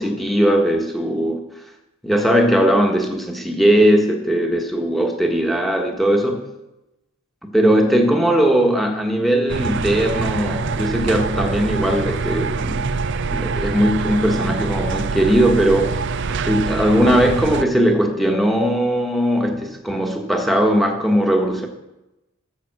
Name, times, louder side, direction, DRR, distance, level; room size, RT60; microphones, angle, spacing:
voice 1, 0.0-1.4 2.0-6.5 7.4-12.9 13.3-21.7, equal, ahead, 2 dB, 1.3 m, -19 dB
sound 1, 9.5-17.6, right 4 dB, 55° right, 0.5 m, -24 dB
12.0 x 6.9 x 7.8 m, 0.96 s
head